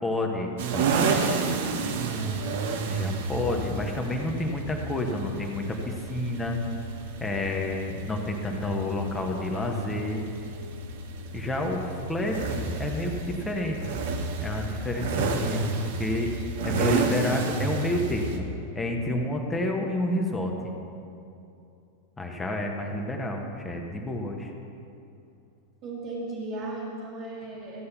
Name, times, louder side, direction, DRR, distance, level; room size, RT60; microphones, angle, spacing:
voice 1, 0.0-0.9 2.9-6.6 7.2-10.2 11.3-13.8 14.4-15.7 16.0-16.3 16.6-18.4 18.7-20.5 22.2-24.5, left 1 dB, 10° left, 1 dB, 1.4 m, -29 dB
sound 1, 0.6-18.4, right 4 dB, 55° right, 1.1 m, -31 dB
voice 2, 0.9-1.3 1.7-2.5 23.0-23.1 25.8-27.9, right 2 dB, 35° right, -6 dB, 1.9 m, -37 dB
14.5 x 8.3 x 5.9 m, 2.6 s
figure-of-eight pair, 90°, 0 cm